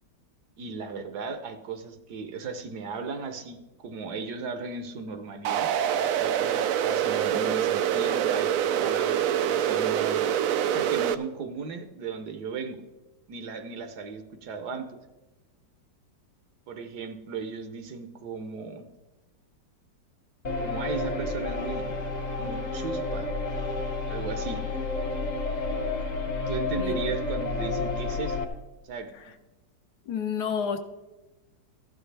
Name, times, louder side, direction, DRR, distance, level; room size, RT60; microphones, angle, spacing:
voice 1, 0.6-5.7 6.2-8.5 8.8-10.2 10.7-12.8 13.3-14.9 16.7-18.9 20.6-21.9 22.4-23.3 24.1-24.6 26.5-28.4 28.8-29.1, right 4 dB, 65° right, 8 dB, 1.3 m, -36 dB
sound 1, 5.4-11.1, right 9 dB, 85° right, 0.7 m, -25 dB
sound 2, 20.4-28.4, left 3 dB, 35° left, 0.7 m, -30 dB
voice 2, 30.1-30.8, left 7 dB, 65° left, 7 dB, 1.3 m, -30 dB
15.0 x 11.5 x 3.3 m, 1.1 s
omnidirectional pair, 2.0 m